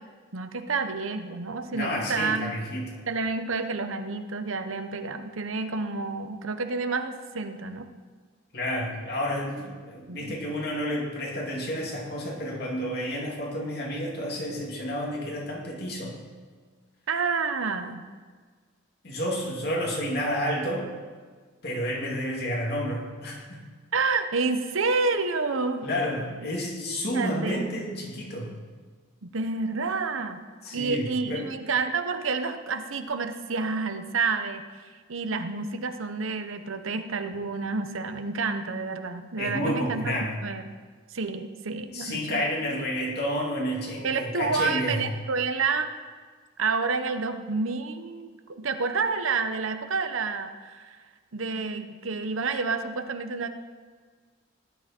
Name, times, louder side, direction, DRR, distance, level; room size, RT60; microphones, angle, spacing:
voice 1, 0.3-2.6 3.1-7.9 10.1-10.3 17.1-18.1 23.9-25.9 26.9-27.6 29.2-30.4 30.7-34.6 35.1-40.1 40.4-40.7 41.1-42.5 44.0-45.9 46.6-51.0 51.3-53.5, right 4 dB, 80° right, 8 dB, 0.9 m, -29 dB
voice 2, 1.7-3.0 8.5-16.2 19.0-20.9 21.6-23.6 25.8-28.5 30.6-31.5 39.4-40.4 41.9-45.1, equal, 50° left, -2 dB, 2.6 m, -30 dB
18.0 x 11.5 x 4.4 m, 1.5 s
head